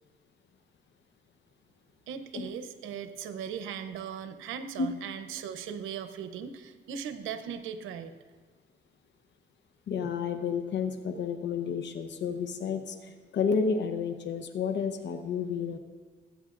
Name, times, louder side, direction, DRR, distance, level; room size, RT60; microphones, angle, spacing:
voice 1, 2.1-8.1, right 8 dB, 90° right, 10 dB, 0.7 m, -38 dB
voice 2, 9.9-15.8, left 6 dB, 65° left, 8 dB, 0.9 m, -31 dB
22.0 x 8.8 x 2.5 m, 1.5 s
cardioid pair, 90°, 20 cm